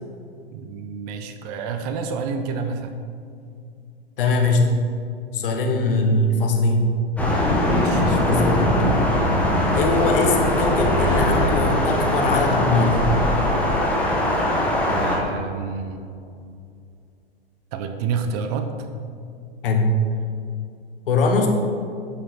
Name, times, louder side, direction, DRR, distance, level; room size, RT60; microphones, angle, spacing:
voice 1, 0.5-2.9 7.6-8.1 14.9-16.0 17.7-18.7, right 5 dB, 40° right, 7 dB, 0.8 m, -29 dB
voice 2, 4.2-4.8 5.3-6.9 7.9-8.8 9.7-13.1 19.6-19.9 21.1-21.5, left 3 dB, 60° left, 3 dB, 1.4 m, -21 dB
Thunder, 7.2-15.2, left 1 dB, 5° left, 1.6 m, -21 dB
8.5 x 7.9 x 4.2 m, 2.4 s
figure-of-eight pair, 100°, 31 cm